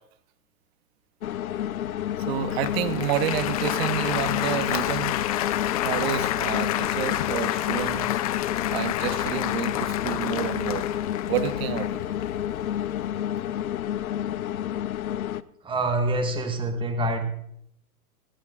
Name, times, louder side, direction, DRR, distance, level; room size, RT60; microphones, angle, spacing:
sound 1, 1.2-15.4, left 11 dB, 65° left, 0.7 m, -30 dB
voice 1, 2.3-5.3 5.8-8.1 8.7-10.9 11.3-12.0, right 10 dB, 40° right, 12 dB, 1.2 m, -29 dB
Applause, 2.5-13.1, left 14 dB, 25° left, 0.5 m, -30 dB
voice 2, 15.6-17.2, right 1 dB, 10° right, 6 dB, 1.5 m, -26 dB
20.0 x 14.0 x 2.5 m, 0.69 s
figure-of-eight pair, 115°, 45 cm